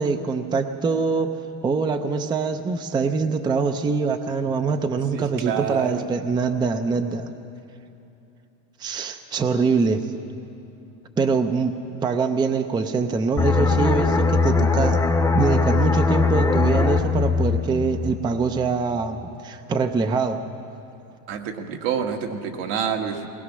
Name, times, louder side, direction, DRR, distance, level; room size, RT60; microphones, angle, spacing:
voice 1, 0.0-1.3 1.6-7.3 8.8-10.0 11.2-11.8 12.0-15.0 15.3-20.4, right 4 dB, 10° right, 8 dB, 0.5 m, -24 dB
voice 2, 5.1-6.0 21.3-23.3, right 7 dB, 75° right, 3 dB, 2.0 m, -27 dB
sound 1, 13.4-18.8 19.1-19.3, left 4 dB, 10° left, 0.8 m, -21 dB
21.0 x 20.0 x 6.2 m, 2.8 s
cardioid pair, 155°, 36 cm